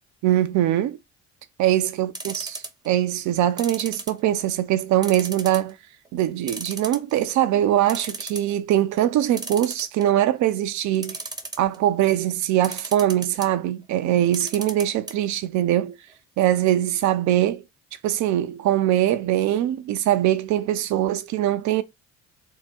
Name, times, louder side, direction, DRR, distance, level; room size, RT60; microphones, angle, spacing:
voice 1, 0.2-1.0 1.6-5.8 6.1-11.2 11.6-15.9 16.4-17.6 18.0-21.8, right 12 dB, 45° right, 0.5 m, -22 dB
sound 1, 2.1-2.9 3.6-4.6 5.0-5.7 6.1-6.2 6.5-7.3 7.6-7.7 7.9-8.5 9.4-10.2 10.9-11.8 12.6-13.5 14.3-15.1 15.4-15.5 15.8-15.9, right 3 dB, 10° right, 0.7 m, -34 dB
3.5 x 2.1 x 4.2 m
hypercardioid pair, 60°, 40 cm